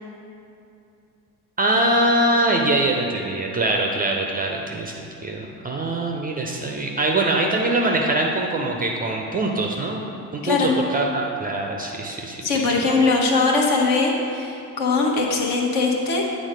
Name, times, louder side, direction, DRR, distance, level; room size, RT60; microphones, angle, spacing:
voice 1, 1.6-10.0 10.3-12.4, right 2 dB, 20° right, 1 dB, 0.5 m, -23 dB
voice 2, 12.4-16.2, left 3 dB, 50° left, 0 dB, 1.1 m, -21 dB
8.9 x 3.7 x 4.9 m, 2.6 s
figure-of-eight pair, 55°, 49 cm